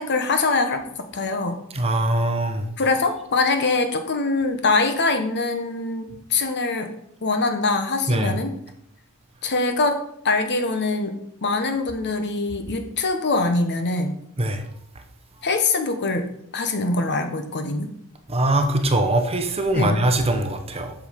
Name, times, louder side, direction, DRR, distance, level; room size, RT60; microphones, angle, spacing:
voice 1, 0.0-1.6 2.8-6.9 7.2-8.5 9.4-10.0 10.2-14.1 15.4-17.9 19.7-20.0, left 3 dB, 50° left, 7 dB, 1.1 m, -23 dB
voice 2, 1.7-2.7 8.1-8.4 14.4-14.6 18.3-20.9, right 1 dB, 25° right, 6 dB, 1.0 m, -22 dB
8.0 x 6.3 x 5.2 m, 0.73 s
head